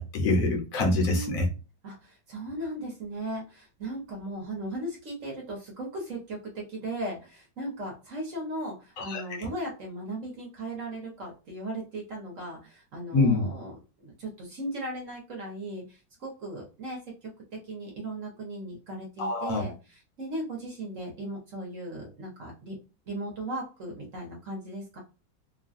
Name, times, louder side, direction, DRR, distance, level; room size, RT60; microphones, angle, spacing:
voice 1, 0.0-1.5 9.0-9.2 13.1-13.5 19.2-19.6, left 2 dB, 60° left, 2 dB, 1.0 m, -25 dB
voice 2, 0.9-1.4 1.8-13.7 14.0-17.3 17.7-22.7 23.0-25.0, right 1 dB, 50° right, -1 dB, 1.2 m, -37 dB
3.1 x 2.3 x 2.5 m, 0.32 s
omnidirectional pair, 1.9 m